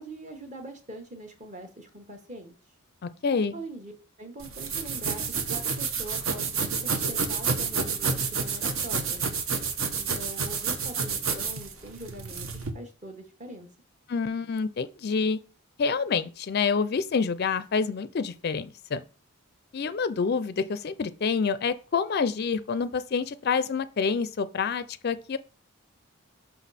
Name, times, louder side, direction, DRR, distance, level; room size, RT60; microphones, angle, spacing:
voice 1, 0.0-2.5 3.5-3.9 4.2-5.2 5.5-9.2 9.9-13.7, right 1 dB, 35° right, 1.3 m, -43 dB
voice 2, 3.0-3.6 14.1-15.4 15.8-19.0 19.7-25.4, left 5 dB, 45° left, 0.4 m, -27 dB
sound 1, 4.4-12.7, right 5 dB, 65° right, 1.0 m, -29 dB
6.1 x 5.6 x 4.1 m
head